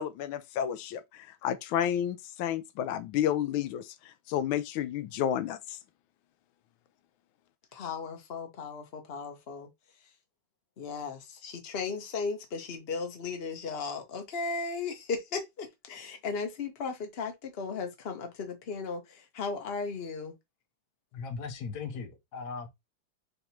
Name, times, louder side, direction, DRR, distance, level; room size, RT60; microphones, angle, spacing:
voice 1, 0.0-5.8, left 10 dB, 90° left, 1.4 m, -31 dB
voice 2, 7.7-9.7 10.8-20.3, left 4 dB, 40° left, 1.1 m, -36 dB
voice 3, 21.1-22.7, left 5 dB, 60° left, 1.4 m, -38 dB
3.5 x 3.5 x 4.2 m
omnidirectional pair, 2.1 m